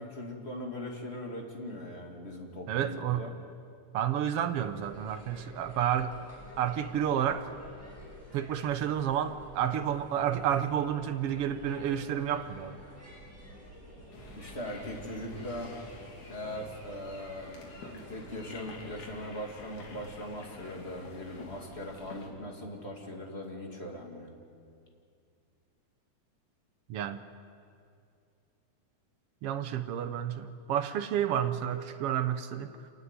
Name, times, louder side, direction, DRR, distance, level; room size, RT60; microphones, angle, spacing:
voice 1, 0.0-3.3 14.4-15.7 16.3-24.3, left 1 dB, 20° left, 1 dB, 2.4 m, -40 dB
voice 2, 2.7-3.3 3.9-6.2 6.6-7.5 8.3-12.8 26.9-27.2 29.4-32.9, right 9 dB, 65° right, 10 dB, 1.6 m, -30 dB
sound 1, 4.6-19.3, equal, 5° left, 7.2 m, -51 dB
sound 2, 14.1-22.3, left 2 dB, 80° left, 4.0 m, -49 dB
27.0 x 14.5 x 9.7 m, 2.4 s
omnidirectional pair, 3.3 m